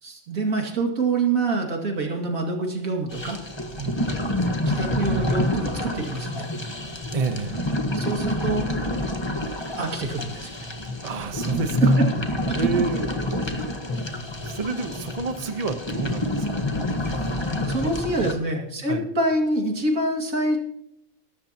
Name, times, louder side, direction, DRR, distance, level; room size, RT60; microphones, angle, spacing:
voice 1, 0.0-3.4 4.7-6.5 8.0-9.0 9.8-10.5 17.7-20.6, right 2 dB, 80° right, 1 dB, 2.8 m, -26 dB
sound 1, 3.1-18.3, left 1 dB, 20° left, 1.3 m, -27 dB
voice 2, 7.1-7.6 11.0-12.0 12.5-13.2 13.4-13.8 14.4-17.3 17.8-17.9 18.2-18.4 18.9-19.1, right 4 dB, 30° right, 7 dB, 1.0 m, -30 dB
21.5 x 12.5 x 3.0 m, 0.81 s
omnidirectional pair, 1.4 m